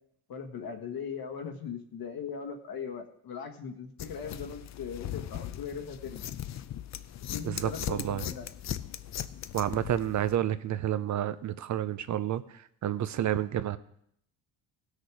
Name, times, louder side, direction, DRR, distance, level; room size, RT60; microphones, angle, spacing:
voice 1, 0.3-6.3 7.3-8.5, left 6 dB, 60° left, 5 dB, 1.5 m, -39 dB
sound 1, 4.0-10.4, left 11 dB, 45° left, 0.5 m, -39 dB
voice 2, 7.4-8.2 9.5-13.8, right 11 dB, 45° right, 13 dB, 0.6 m, -30 dB
16.5 x 6.6 x 4.8 m, 0.70 s
cardioid pair, 110°, 39 cm